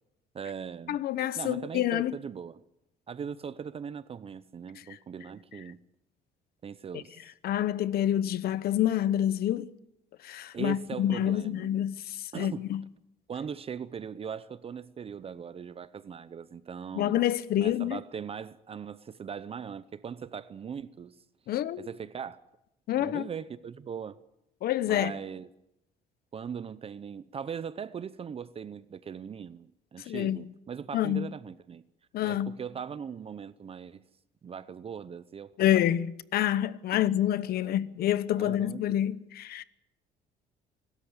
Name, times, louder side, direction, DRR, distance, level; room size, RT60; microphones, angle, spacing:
voice 1, 0.3-1.0 1.4-2.6 3.1-5.8 6.6-7.3 10.5-11.7 12.3-12.7 13.3-17.2 17.6-21.2 21.8-22.4 23.0-24.2 24.9-25.5 26.3-31.8 32.2-34.0 34.4-35.8 37.6-37.7 38.4-38.8, right 7 dB, 35° right, 0.7 m, -40 dB
voice 2, 0.9-2.2 4.9-5.0 6.9-7.0 7.4-9.7 10.2-12.8 16.9-18.0 21.5-21.9 22.9-23.3 24.6-25.1 30.1-30.5 30.9-31.3 32.1-32.5 35.6-39.6, left 11 dB, 65° left, 1.0 m, -27 dB
25.0 x 13.5 x 8.6 m
cardioid pair, 110°, 17 cm